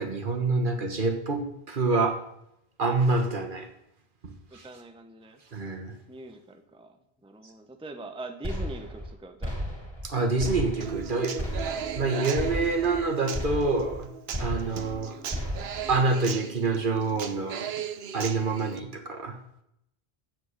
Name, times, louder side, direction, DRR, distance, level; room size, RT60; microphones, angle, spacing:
voice 1, 0.0-2.2 2.8-3.7 4.2-4.7 5.5-5.9 10.0-14.1 14.4-15.1 15.9-17.7 18.1-19.4, right 3 dB, 55° right, 4 dB, 1.6 m, -27 dB
voice 2, 4.5-5.4 6.1-7.0 7.2-9.6, right 2 dB, 5° right, 7 dB, 0.7 m, -42 dB
sound 1, 8.4-9.1 9.4-10.1 10.4-11.1 11.4-12.1 12.4-13.1 13.3-14.0 14.3-15.0 15.3-16.0, equal, 25° right, 3.4 m, -34 dB
Human voice / Acoustic guitar, 10.8-18.8, right 8 dB, 75° right, 1.0 m, -37 dB
7.8 x 7.7 x 8.1 m, 0.79 s
omnidirectional pair, 1.0 m